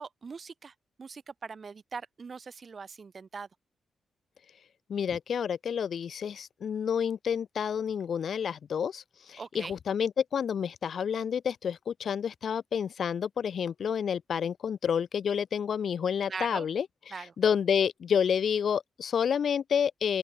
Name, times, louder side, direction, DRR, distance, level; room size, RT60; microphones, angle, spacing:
voice 1, 0.0-3.5 5.1-5.2 9.4-9.8 16.3-16.7 17.1-17.3, right 5 dB, 40° right, 4.0 m, -41 dB
voice 2, 4.9-16.9 17.4-20.2, left 7 dB, 60° left, 0.7 m, -29 dB
open air
cardioid pair, 115°, 0 cm